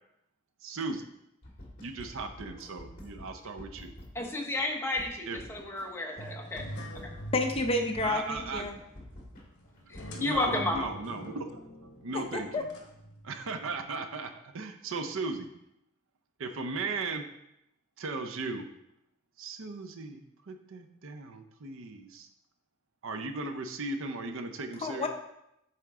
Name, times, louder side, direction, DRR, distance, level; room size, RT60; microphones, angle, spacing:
voice 1, 0.6-1.1 1.8-3.9 5.3-5.4 8.0-8.7 10.1-11.6 12.0-12.7 13.2-15.5 16.4-17.2 18.0-18.7 19.4-22.3 23.0-25.1, right 3 dB, 65° right, 7 dB, 0.6 m, -37 dB
sound 1, 1.4-4.3 4.6-4.7 5.0-5.9 6.2-6.3 6.6-9.4 9.8-10.9, left 1 dB, 40° left, 1.8 m, -47 dB
voice 2, 4.1-6.6 9.9-10.9, left 2 dB, 10° left, 0 dB, 1.0 m, -32 dB
sound 2, 6.2-13.7, equal, 60° left, 1.2 m, -45 dB
voice 3, 7.3-8.7 12.1-12.6 24.8-25.1, left 2 dB, 25° left, 4 dB, 0.6 m, -30 dB
8.5 x 4.5 x 3.6 m, 0.82 s
head